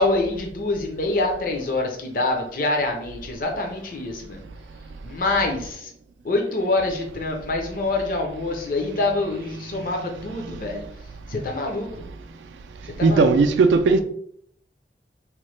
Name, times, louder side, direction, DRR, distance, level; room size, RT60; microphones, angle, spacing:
voice 1, 0.0-4.4 5.0-5.9 6.2-10.9 11.3-12.1 13.0-13.4, left 2 dB, 50° left, 0.5 m, -25 dB
voice 2, 13.0-14.0, right 4 dB, 85° right, 0.3 m, -18 dB
3.0 x 2.1 x 3.1 m
head